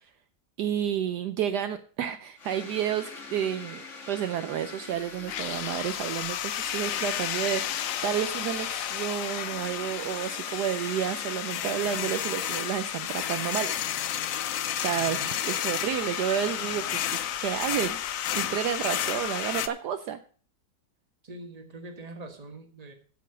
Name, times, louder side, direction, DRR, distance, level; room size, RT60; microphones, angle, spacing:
voice 1, 0.6-13.7 14.8-18.0 18.3-20.2, right 9 dB, 70° right, 9 dB, 1.1 m, -31 dB
sound 1, 2.4-12.4 12.8-18.8, left 3 dB, 45° left, 1.8 m, -46 dB
sound 2, 5.3-19.7, left 11 dB, 65° left, 0.8 m, -31 dB
voice 2, 14.9-15.4 21.2-22.9, right 2 dB, 25° right, 5 dB, 1.4 m, -43 dB
8.3 x 7.9 x 6.6 m, 0.43 s
omnidirectional pair, 2.0 m